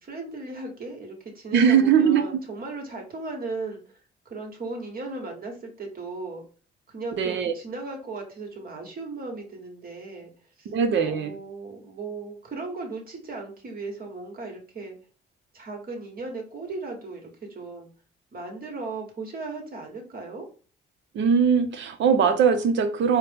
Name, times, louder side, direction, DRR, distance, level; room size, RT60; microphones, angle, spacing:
voice 1, 0.0-3.8 4.2-6.4 6.9-10.3 10.6-10.7 11.0-15.0 15.5-17.9 18.3-20.5, right 3 dB, 50° right, 1.4 m, -36 dB
voice 2, 1.5-2.4 7.2-7.5 10.7-11.3 21.1-23.2, right 7 dB, 70° right, 0.7 m, -21 dB
4.3 x 2.1 x 3.4 m
cardioid pair, 90°, 20 cm